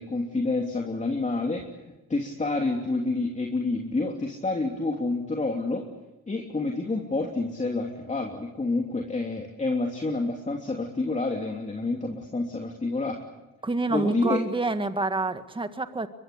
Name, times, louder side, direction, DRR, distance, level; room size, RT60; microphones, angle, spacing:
voice 1, 0.0-1.6 2.1-5.8 6.3-13.2 13.9-14.4, left 3 dB, 25° left, 1 dB, 3.1 m, -28 dB
voice 2, 13.6-16.1, right 3 dB, 15° right, 9 dB, 1.8 m, -27 dB
23.0 x 23.0 x 8.5 m, 1.0 s
cardioid pair, 90°, 30 cm